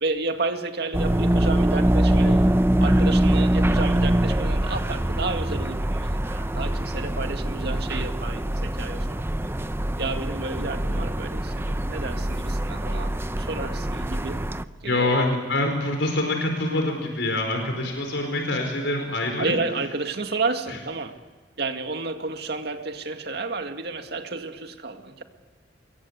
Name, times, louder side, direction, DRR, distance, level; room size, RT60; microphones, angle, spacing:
voice 1, 0.0-2.3 2.8-9.2 10.0-14.4 14.8-15.2 19.4-21.2 21.6-25.2, right 3 dB, 65° right, 6 dB, 2.2 m, -31 dB
sound 1, 0.9-14.6, right 1 dB, 15° right, 0.7 m, -23 dB
voice 2, 14.8-19.5, left 2 dB, 75° left, 3 dB, 4.8 m, -25 dB
25.5 x 22.5 x 8.2 m, 1.4 s
head